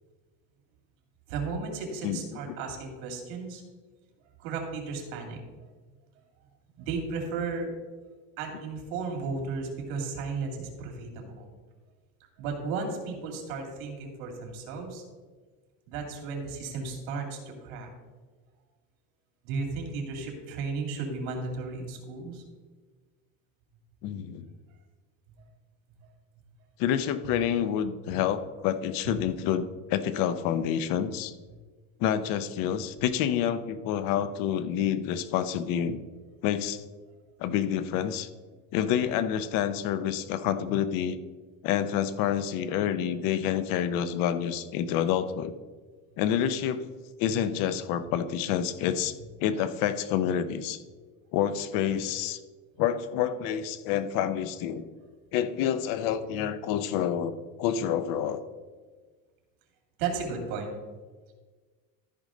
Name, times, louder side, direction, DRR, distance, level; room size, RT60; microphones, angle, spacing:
voice 1, 1.3-3.6 4.4-5.4 6.8-7.7 8.4-11.5 12.4-15.0 15.9-17.9 19.4-22.4 28.1-28.2 29.0-29.2 60.0-60.7, right 4 dB, 85° right, 2 dB, 2.7 m, -34 dB
voice 2, 24.0-24.5 26.8-31.3 32.0-36.0 36.4-36.8 37.4-38.3 38.7-41.2 41.6-45.5 46.2-46.9 47.2-49.1 49.4-50.8 51.3-52.4 52.8-54.8 55.3-58.4, left 9 dB, 55° left, 13 dB, 0.7 m, -28 dB
13.5 x 5.2 x 3.8 m, 1.4 s
cardioid pair, 155°, 40 cm